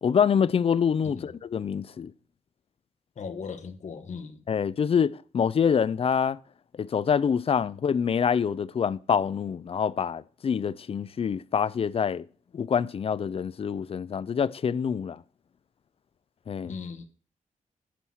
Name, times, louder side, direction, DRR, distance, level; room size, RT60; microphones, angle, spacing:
voice 1, 0.0-2.1 4.5-6.4 6.8-12.2 12.5-15.2 16.5-16.7, left 7 dB, 50° left, 0.4 m, -26 dB
voice 2, 3.2-4.4 16.6-17.1, left 5 dB, 65° left, 1.1 m, -38 dB
10.0 x 5.6 x 6.2 m
wide cardioid pair, 110°, 13 cm